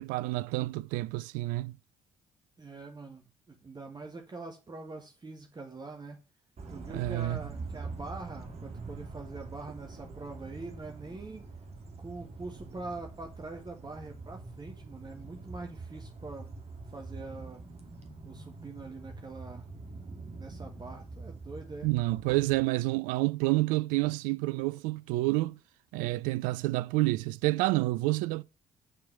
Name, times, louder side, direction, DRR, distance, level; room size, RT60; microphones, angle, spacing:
voice 1, 0.0-1.8 6.9-7.4 21.8-25.6 25.9-28.4, right 20 dB, 60° right, 0.4 m, -29 dB
voice 2, 2.6-3.2 3.5-6.2 6.7-11.4 12.0-16.5 16.9-17.6 18.2-19.7 20.4-21.9, right 3 dB, 30° right, 1.6 m, -44 dB
sound 1, 6.6-22.6, right 3 dB, 45° right, 2.2 m, -45 dB
9.2 x 4.7 x 6.6 m
figure-of-eight pair, 45°, 15 cm